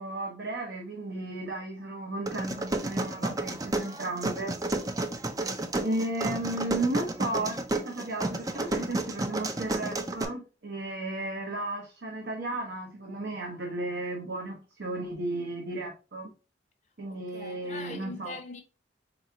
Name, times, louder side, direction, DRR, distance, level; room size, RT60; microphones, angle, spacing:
voice 1, 0.0-4.5 5.8-16.3 17.0-18.4, right 2 dB, 75° right, 1.0 m, -34 dB
sound 1, 2.3-10.2, right 2 dB, 20° right, 0.4 m, -31 dB
voice 2, 17.1-18.6, left 3 dB, 40° left, 0.7 m, -42 dB
4.3 x 3.4 x 2.8 m
head